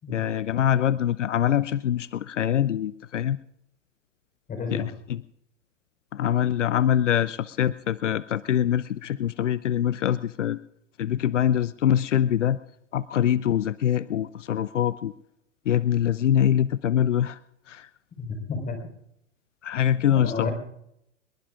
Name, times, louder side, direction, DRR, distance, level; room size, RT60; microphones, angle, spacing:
voice 1, 0.1-3.4 4.7-5.2 6.1-10.6 11.0-12.6 12.9-15.1 15.7-17.4 17.7-17.9 19.6-20.5, left 10 dB, 80° left, 18 dB, 0.6 m, -24 dB
voice 2, 4.5-4.9 18.2-18.8 20.1-20.5, left 4 dB, 25° left, 4 dB, 4.7 m, -31 dB
25.0 x 22.0 x 2.5 m, 0.78 s
hypercardioid pair, 100°, 36 cm